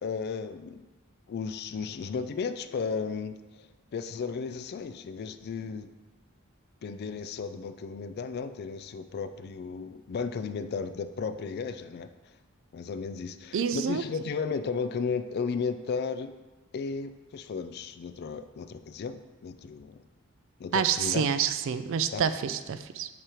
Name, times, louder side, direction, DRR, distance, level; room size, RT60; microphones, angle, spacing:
voice 1, 0.0-0.9 1.3-5.9 6.8-12.1 12.7-16.3 16.7-20.0 20.6-21.3 22.1-22.2, left 5 dB, 50° left, 10 dB, 0.3 m, -34 dB
voice 2, 13.5-14.0 20.7-23.1, right 7 dB, 60° right, 12 dB, 0.4 m, -28 dB
7.3 x 3.0 x 4.9 m, 1.2 s
head